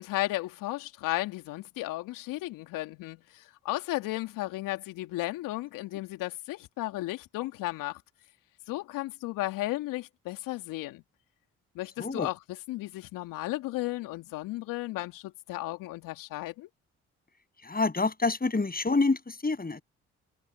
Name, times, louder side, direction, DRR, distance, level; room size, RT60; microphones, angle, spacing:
voice 1, 0.0-8.0 8.7-11.0 11.7-12.4 12.7-16.7, left 18 dB, 75° left, 2.9 m, -34 dB
voice 2, 12.0-12.3 17.6-19.8, left 3 dB, 25° left, 7.9 m, -27 dB
hypercardioid pair, 45°, 33 cm